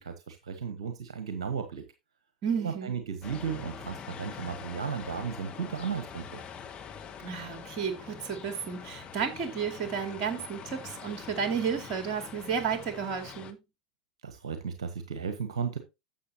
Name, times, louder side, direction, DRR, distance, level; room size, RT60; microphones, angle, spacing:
voice 1, 0.0-1.8 2.6-6.4 14.2-15.8, right 6 dB, 75° right, 1.3 m, -35 dB
voice 2, 2.4-2.9 7.2-13.6, right 6 dB, 50° right, 2.6 m, -32 dB
sound 1, 3.2-13.5, left 7 dB, 35° left, 1.5 m, -44 dB
11.5 x 7.5 x 2.9 m
figure-of-eight pair, 80°, 3 cm